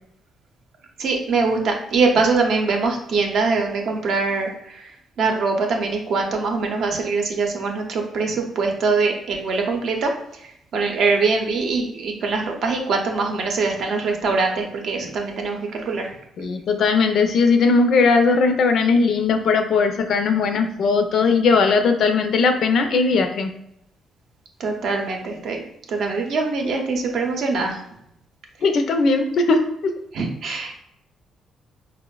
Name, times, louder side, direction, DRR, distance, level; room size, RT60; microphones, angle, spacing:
voice 1, 1.0-4.9 5.2-10.1 10.7-16.1 24.6-25.6 25.9-27.8 30.1-30.8, right 4 dB, 70° right, 2 dB, 0.6 m, -23 dB
voice 2, 16.4-23.5 28.6-29.9, left 4 dB, 65° left, 6 dB, 0.4 m, -18 dB
4.3 x 2.0 x 2.3 m, 0.76 s
cardioid pair, 90°, 0 cm